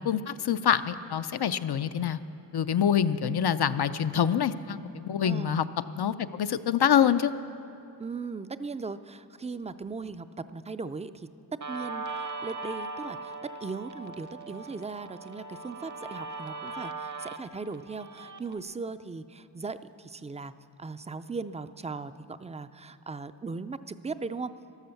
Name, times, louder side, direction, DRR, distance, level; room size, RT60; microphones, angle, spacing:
voice 1, 0.0-2.2 2.5-5.7 5.9-7.3, left 8 dB, 75° left, 11 dB, 0.5 m, -26 dB
voice 2, 5.2-5.5 8.0-10.3 10.5-11.3 11.7-20.5 20.8-24.5, right 4 dB, 15° right, 12 dB, 0.4 m, -38 dB
Guitar, 11.6-18.6, right 3 dB, 45° right, 0.8 m, -39 dB
13.0 x 12.5 x 7.0 m, 2.8 s
wide cardioid pair, 65°, 40 cm